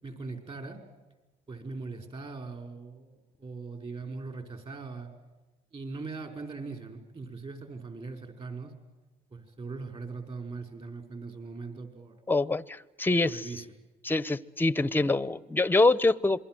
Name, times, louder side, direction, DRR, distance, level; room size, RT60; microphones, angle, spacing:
voice 1, 0.0-0.8 1.5-5.1 5.7-8.7 9.3-12.2 13.3-13.6, right 4 dB, 35° right, 6 dB, 5.2 m, -40 dB
voice 2, 12.3-13.5 14.0-16.4, left 2 dB, 10° left, 19 dB, 0.8 m, -25 dB
27.0 x 22.5 x 7.7 m, 1.1 s
cardioid pair, 110°, 17 cm